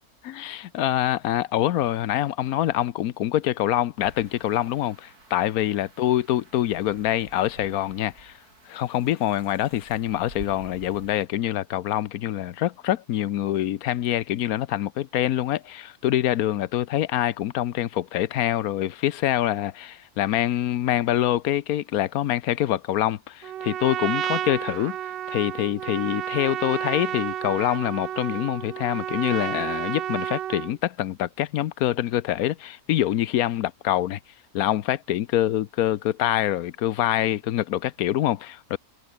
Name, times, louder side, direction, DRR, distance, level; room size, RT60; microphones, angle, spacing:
voice 1, 0.3-8.3 8.7-25.0 25.3-34.2 34.5-38.8, left 12 dB, 80° left, 1.2 m, -25 dB
sound 1, 4.0-11.3, right 2 dB, 85° right, 5.9 m, -49 dB
Trumpet, 23.4-30.8, right 11 dB, 70° right, 0.5 m, -31 dB
omnidirectional pair, 1.6 m